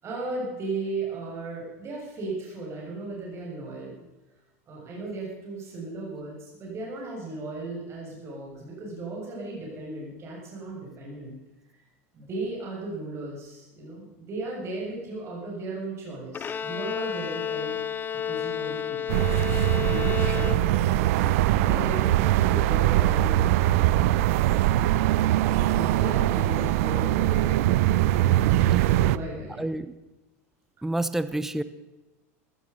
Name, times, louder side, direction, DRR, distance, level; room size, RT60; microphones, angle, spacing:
voice 1, 0.0-4.0 4.7-11.4 12.1-17.8 18.2-19.2 19.8-24.5 25.1-27.7 28.6-29.6, right 2 dB, 35° right, -3 dB, 7.1 m, -36 dB
Bowed string instrument, 16.3-21.1, left 8 dB, 25° left, 0.6 m, -31 dB
sound 1, 19.1-29.2, right 14 dB, 70° right, 0.6 m, -22 dB
voice 2, 29.6-29.9 30.8-31.6, right 1 dB, 5° right, 13 dB, 0.8 m, -29 dB
15.5 x 14.0 x 5.5 m, 1.1 s
supercardioid pair, 110°, 8 cm